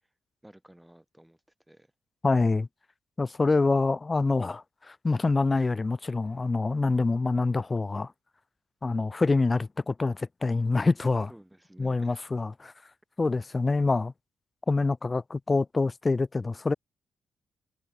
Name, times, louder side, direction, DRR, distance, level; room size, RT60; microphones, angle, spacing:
voice 1, 0.4-1.4 1.7-1.9 5.5-5.7 11.3-12.2, right 1 dB, 5° right, 2.8 m, -53 dB
voice 2, 2.2-2.7 3.2-8.1 8.8-11.3 11.8-12.7 13.2-14.1 14.7-16.7, left 3 dB, 20° left, 0.4 m, -26 dB
wide cardioid pair, 170°, 0 cm